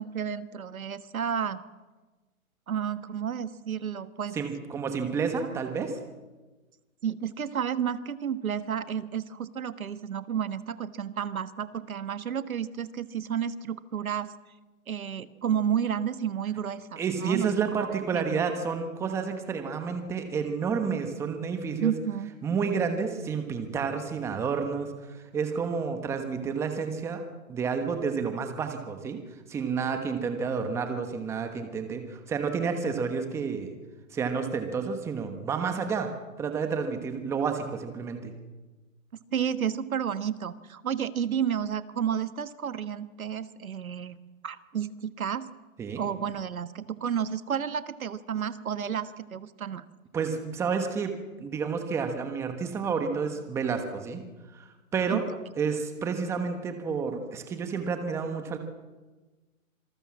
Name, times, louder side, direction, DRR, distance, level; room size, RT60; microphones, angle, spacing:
voice 1, 0.0-1.6 2.7-4.4 7.0-14.3 14.9-18.4 21.8-22.3 39.3-44.2 44.4-45.5 46.0-49.8 55.1-55.2, right 8 dB, 75° right, 12 dB, 1.5 m, -31 dB
voice 2, 4.3-6.0 17.0-21.9 22.4-27.2 27.5-29.2 29.5-33.7 34.1-36.1 36.4-38.3 45.8-46.0 50.1-51.1 51.4-54.2 54.5-55.2 55.6-58.6, right 5 dB, 5° right, 6 dB, 1.1 m, -30 dB
26.0 x 19.0 x 7.4 m, 1.2 s
hypercardioid pair, 155°, 42 cm